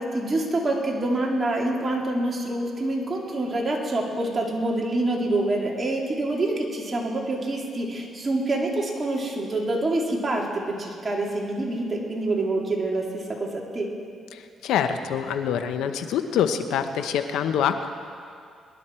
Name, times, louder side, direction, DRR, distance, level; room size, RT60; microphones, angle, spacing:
voice 1, 0.0-13.9, right 2 dB, 30° right, -1 dB, 2.6 m, -26 dB
voice 2, 14.3-17.9, left 8 dB, 85° left, 8 dB, 0.9 m, -25 dB
22.5 x 11.5 x 4.5 m, 2.4 s
cardioid pair, 90°, 0 cm